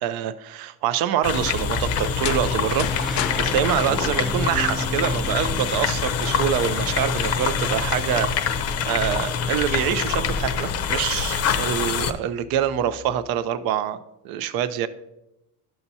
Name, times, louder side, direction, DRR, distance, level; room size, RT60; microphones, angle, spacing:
voice 1, 0.0-14.0 14.2-14.9, right 10 dB, 70° right, 13 dB, 0.6 m, -25 dB
sound 1, 1.2-12.1, left 6 dB, 40° left, 0.6 m, -25 dB
sound 2, 1.4-11.3 12.3-13.3, left 1 dB, ahead, 0.7 m, -35 dB
sound 3, 2.2-4.9, left 12 dB, 85° left, 0.5 m, -33 dB
12.0 x 5.7 x 2.7 m, 0.92 s
cardioid pair, 120°, 38 cm